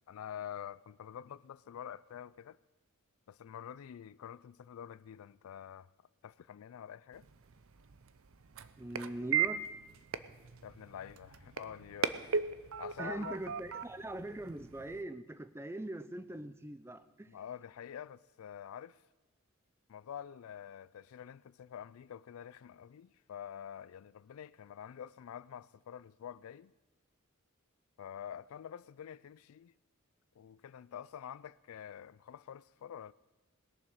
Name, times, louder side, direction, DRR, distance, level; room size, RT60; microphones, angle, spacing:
voice 1, 0.1-2.6 3.3-5.9 6.2-7.3 10.6-12.1 12.8-13.4 17.3-19.0 19.9-26.7 28.0-29.7 30.4-33.1, left 9 dB, 80° left, 0.3 m, -47 dB
sound 1, 7.1-15.0, right 7 dB, 70° right, 0.6 m, -38 dB
voice 2, 8.8-9.6 12.3-12.4 13.0-17.3, right 1 dB, 10° right, 0.4 m, -42 dB
20.0 x 7.1 x 6.5 m
head